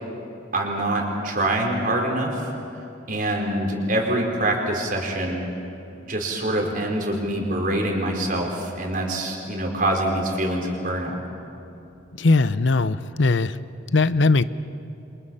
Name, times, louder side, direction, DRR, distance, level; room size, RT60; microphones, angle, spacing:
voice 1, 0.5-2.5 3.1-5.4 6.0-11.2, right 1 dB, 45° right, 0 dB, 5.1 m, -25 dB
voice 2, 12.2-13.6 13.9-14.4, left 3 dB, 75° left, 14 dB, 0.8 m, -19 dB
29.5 x 26.5 x 5.7 m, 3.0 s
head